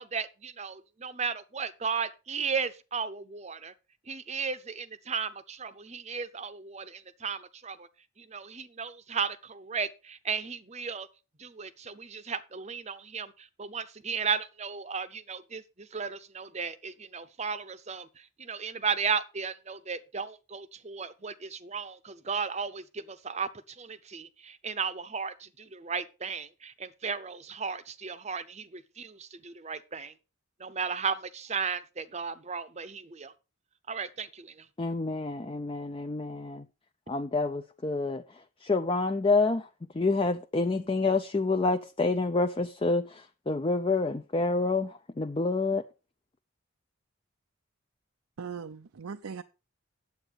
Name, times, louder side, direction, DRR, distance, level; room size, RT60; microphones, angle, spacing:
voice 1, 0.0-3.7 4.1-7.9 8.2-11.1 11.4-30.1 30.6-33.3 33.9-34.7, right 5 dB, 30° right, 0.7 m, -35 dB
voice 2, 34.8-36.6 37.1-38.2 38.6-39.6 40.0-43.0 43.5-44.9 45.2-45.8, left 3 dB, 25° left, 0.4 m, -27 dB
voice 3, 48.4-49.4, right 6 dB, 90° right, 0.6 m, -39 dB
9.3 x 7.9 x 5.1 m
head